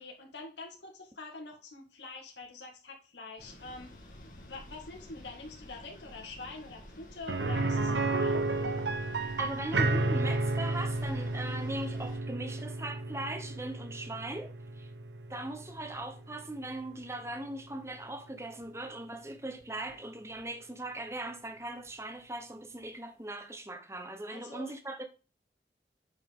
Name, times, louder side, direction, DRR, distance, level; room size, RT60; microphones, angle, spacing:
voice 1, 0.0-3.9 4.4-8.4 24.3-24.7, left 3 dB, 90° left, 2.0 m, -45 dB
sound 1, 3.4-12.2, left 1 dB, 45° left, 2.0 m, -51 dB
sound 2, 7.3-17.1 17.4-17.5 19.9-20.0, right 2 dB, 85° right, 0.9 m, -32 dB
voice 2, 9.2-14.9 15.3-25.0, right 1 dB, 15° right, 1.0 m, -39 dB
8.1 x 5.5 x 3.6 m
head